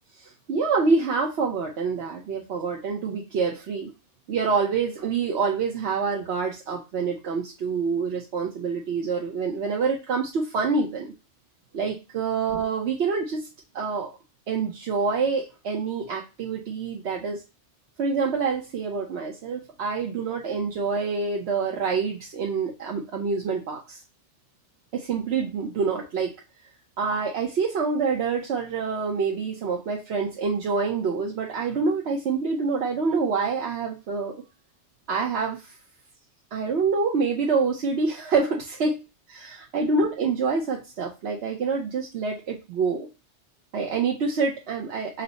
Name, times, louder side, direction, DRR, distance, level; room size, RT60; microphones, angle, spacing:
voice 1, 0.2-3.9 4.3-11.1 11.7-13.5 13.7-14.1 14.5-17.4 18.0-24.0 24.9-26.4 27.0-34.3 35.1-35.7 36.5-39.0 39.3-43.1 43.7-45.2, right 4 dB, 70° right, 0 dB, 1.0 m, -26 dB
5.6 x 2.0 x 3.9 m, 0.28 s
omnidirectional pair, 1.2 m